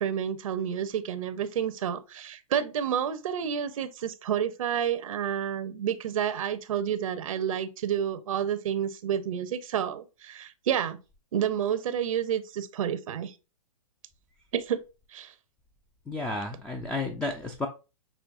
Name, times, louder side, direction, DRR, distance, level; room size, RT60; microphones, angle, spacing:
voice 1, 0.0-11.0 11.3-13.3 14.5-14.8 15.1-15.3, right 9 dB, 70° right, 0.6 m, -30 dB
voice 2, 16.1-17.7, left 2 dB, 5° left, 0.3 m, -32 dB
6.2 x 3.0 x 2.4 m
hypercardioid pair, 130°, 18 cm